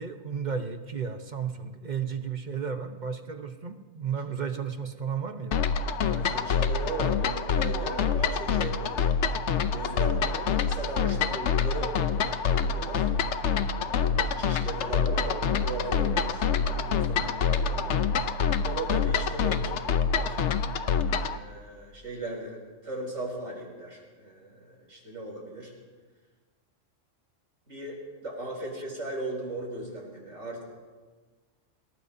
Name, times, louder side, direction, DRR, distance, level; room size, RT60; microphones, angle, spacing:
voice 1, 0.0-5.6, right 6 dB, 40° right, 7 dB, 1.0 m, -33 dB
sound 1, 5.5-21.4, left 6 dB, 70° left, 1.0 m, -26 dB
voice 2, 6.0-9.1 9.7-13.1 13.8-18.0 18.6-20.4 21.1-25.7 27.7-30.6, right 1 dB, 75° right, -3 dB, 6.0 m, -37 dB
27.5 x 18.5 x 2.7 m, 1.4 s
omnidirectional pair, 1.3 m